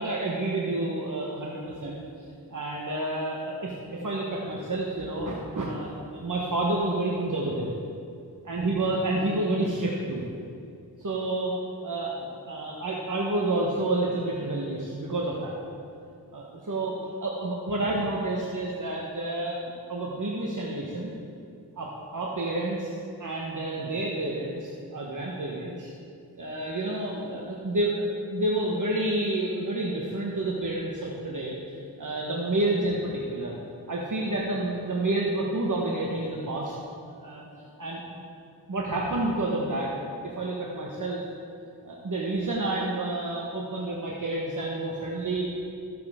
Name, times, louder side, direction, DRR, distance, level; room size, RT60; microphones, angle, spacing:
voice 1, 0.0-2.0 2.5-7.7 8.5-10.3 11.0-11.6 11.8-12.2 12.5-15.5 16.3-21.1 21.8-25.9 26.4-33.6 33.9-36.8 37.1-37.5 37.8-38.0 38.7-39.9 40.2-41.2 41.8-45.5, right 2 dB, 50° right, -3 dB, 1.3 m, -29 dB
14.0 x 7.6 x 3.7 m, 2.4 s
cardioid pair, 55°, 40 cm